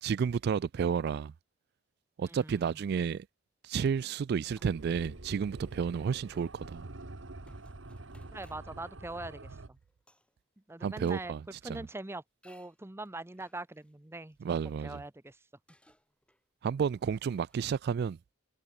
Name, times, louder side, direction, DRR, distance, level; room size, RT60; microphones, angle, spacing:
voice 1, 0.0-1.3 2.2-3.3 3.6-6.8 10.8-11.8 14.4-15.0 16.6-18.2, right 6 dB, 55° right, 0.3 m, -31 dB
voice 2, 2.3-2.8 8.3-9.8 10.7-14.6 14.8-15.4, right 2 dB, 15° right, 0.7 m, -43 dB
sound 1, 4.2-4.3 4.5-11.3 11.7-11.8 12.4-15.3 15.7-17.8, left 1 dB, 5° left, 5.0 m, -66 dB
sound 2, 4.6-9.7, right 2 dB, 75° right, 1.6 m, -47 dB
head